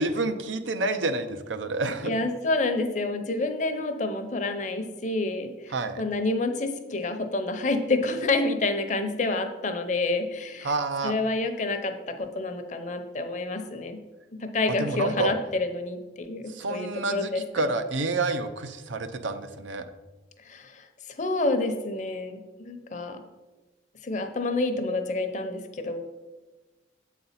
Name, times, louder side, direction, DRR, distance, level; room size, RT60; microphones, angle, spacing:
voice 1, 0.0-2.1 5.7-6.0 10.6-11.2 14.8-15.3 16.5-19.9, right 3 dB, 90° right, 9 dB, 0.6 m, -29 dB
voice 2, 2.0-10.7 11.0-14.0 14.3-17.4 20.4-20.9 21.2-23.2 24.0-26.1, left 2 dB, 40° left, 7 dB, 0.7 m, -28 dB
7.5 x 4.1 x 5.7 m, 1.2 s
head